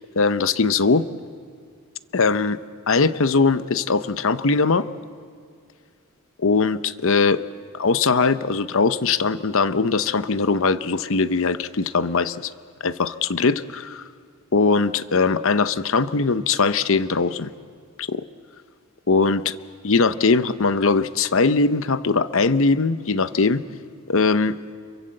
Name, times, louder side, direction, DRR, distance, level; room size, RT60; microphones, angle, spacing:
voice 1, 0.2-1.1 2.1-2.6 2.9-4.9 6.4-7.4 7.7-12.5 12.8-14.1 14.5-17.5 18.0-18.2 19.1-19.6 19.8-23.6 24.1-24.6, left 4 dB, 60° left, 13 dB, 0.8 m, -20 dB
28.0 x 23.0 x 7.8 m, 2.2 s
head